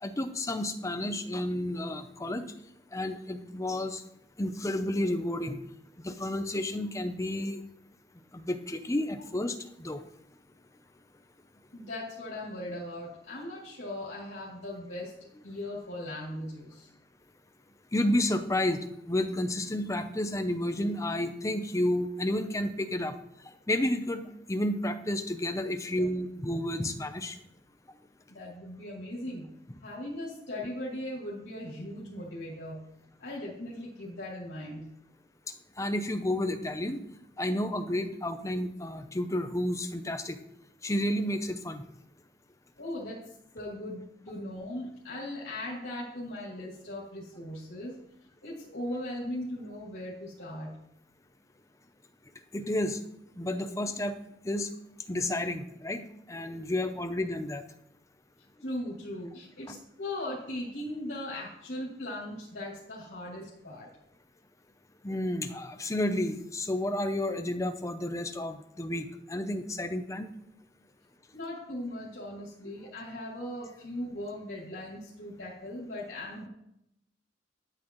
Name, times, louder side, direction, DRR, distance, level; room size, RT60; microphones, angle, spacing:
voice 1, 0.0-2.5 2.9-4.0 4.4-5.6 6.0-7.6 8.3-10.0 17.9-18.8 19.1-23.1 23.4-27.4 29.7-29.8 35.8-37.0 37.4-40.4 40.8-41.8 52.5-53.0 53.4-54.1 54.4-54.7 55.1-57.6 59.7-59.8 65.0-70.3, left 1 dB, 15° left, 8 dB, 0.7 m, -31 dB
voice 2, 11.7-15.1 15.4-16.9 28.3-29.5 29.8-32.8 33.2-34.9 42.8-48.0 48.4-50.7 58.6-63.9 71.3-76.5, left 1 dB, 70° left, -7 dB, 2.9 m, -39 dB
12.0 x 8.7 x 3.1 m, 0.79 s
head